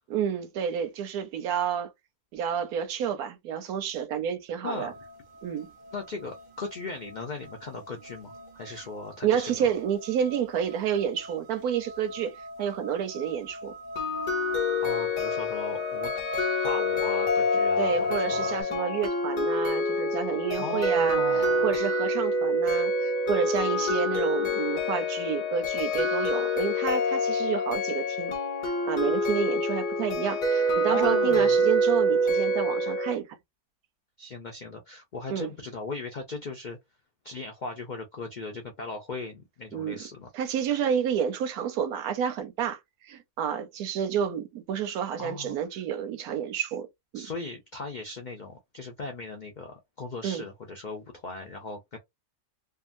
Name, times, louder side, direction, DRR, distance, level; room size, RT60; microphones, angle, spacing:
voice 1, 0.1-1.9 2.3-4.9 5.4-5.7 9.2-13.7 17.8-28.3 28.8-33.3 35.3-35.5 39.7-40.0 40.3-42.8 43.0-46.9 47.1-47.3 50.2-50.4, right 8 dB, 90° right, 1.1 m, -30 dB
sound 1, 4.7-18.6, right 1 dB, 60° right, 0.5 m, -40 dB
voice 2, 5.9-9.7 14.8-16.1 16.6-18.6 20.6-21.7 30.9-31.6 34.2-36.8 37.2-40.3 45.2-45.6 47.1-52.0, left 3 dB, 75° left, 0.4 m, -37 dB
sound 2, 14.0-33.1, left 1 dB, 45° left, 0.7 m, -26 dB
2.8 x 2.3 x 2.5 m
omnidirectional pair, 1.5 m